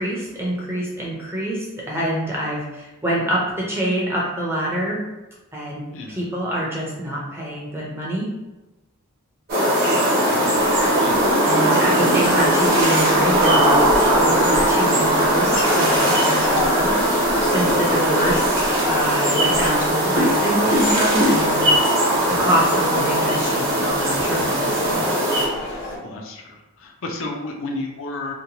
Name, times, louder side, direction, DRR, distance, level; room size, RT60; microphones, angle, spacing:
voice 1, 0.0-5.0 5.5-5.8 6.1-8.3 11.4-16.9 17.4-18.6 18.9-21.7 22.3-25.0, right 1 dB, 10° right, -5 dB, 0.5 m, -25 dB
voice 2, 5.9-6.3 10.2-10.5 11.0-11.3 17.8-17.9 25.7-28.3, left 2 dB, 60° left, 1 dB, 0.4 m, -33 dB
sound 1, 9.5-25.5, right 1 dB, 45° right, 1.0 m, -19 dB
sound 2, 10.2-26.0, left 2 dB, 80° left, 0.8 m, -30 dB
2.8 x 2.1 x 2.7 m, 1.0 s
head